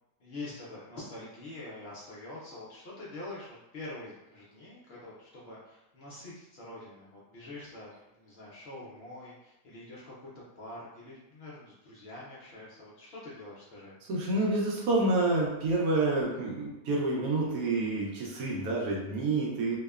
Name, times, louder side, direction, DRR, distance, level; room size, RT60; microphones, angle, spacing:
voice 1, 0.2-14.0, left 2 dB, 55° left, -6 dB, 0.7 m, -45 dB
voice 2, 14.1-19.8, right 2 dB, 85° right, -3 dB, 1.2 m, -28 dB
2.8 x 2.1 x 2.3 m, 0.90 s
omnidirectional pair, 1.5 m